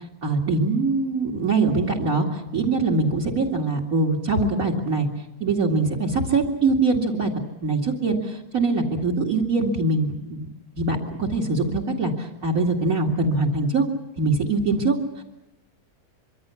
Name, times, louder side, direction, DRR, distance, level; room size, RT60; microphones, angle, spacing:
voice 1, 0.2-5.1 5.4-7.3 7.6-10.5 10.8-13.8 14.2-15.2, right 3 dB, 70° right, 4 dB, 3.0 m, -23 dB
25.0 x 24.5 x 7.1 m, 0.91 s
omnidirectional pair, 1.6 m